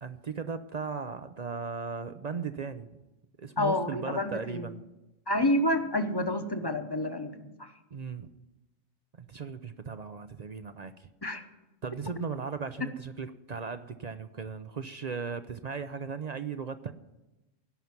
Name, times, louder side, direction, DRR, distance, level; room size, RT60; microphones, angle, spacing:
voice 1, 0.0-2.9 3.4-4.8 7.9-8.3 9.2-11.1 11.8-16.9, right 5 dB, 50° right, 10 dB, 0.5 m, -37 dB
voice 2, 3.6-4.7 5.3-7.7 11.2-11.4, left 1 dB, 20° left, 7 dB, 0.9 m, -29 dB
17.5 x 5.8 x 9.5 m, 1.0 s
omnidirectional pair, 1.3 m